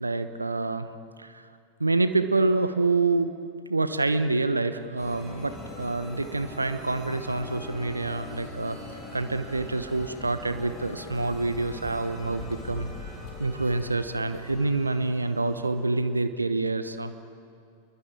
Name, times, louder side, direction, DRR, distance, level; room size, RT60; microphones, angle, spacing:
voice 1, 0.0-0.9 1.2-1.4 1.8-3.3 3.7-8.8 9.1-13.1 13.4-17.3, right 3 dB, 80° right, 11 dB, 1.0 m, -27 dB
sound 1, 5.0-16.1, left 2 dB, 20° left, 7.7 m, -43 dB
sound 2, 9.5-14.7, left 4 dB, 45° left, 2.9 m, -45 dB
28.0 x 22.0 x 9.3 m, 2.4 s
figure-of-eight pair, 90°, 0 cm